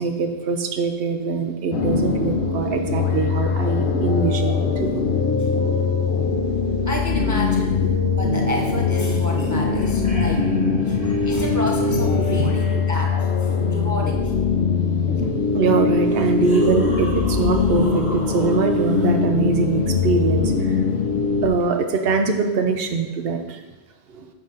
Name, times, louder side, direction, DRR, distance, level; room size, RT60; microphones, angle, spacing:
voice 1, 0.0-5.0 9.1-9.2 10.4-11.2 12.4-12.5 15.5-20.8 21.4-23.6 24.1-24.3, right 4 dB, 70° right, 5 dB, 0.9 m, -23 dB
sound 1, 1.7-21.5, left 5 dB, 90° left, 1.0 m, -21 dB
voice 2, 6.9-10.5 10.8-14.3, equal, 25° right, 0 dB, 0.4 m, -31 dB
sound 2, 9.6-12.7 15.2-15.3 16.0-19.1 21.6-21.7, right 1 dB, 10° right, 1.1 m, -32 dB
7.1 x 3.8 x 5.6 m, 1.2 s
omnidirectional pair, 1.1 m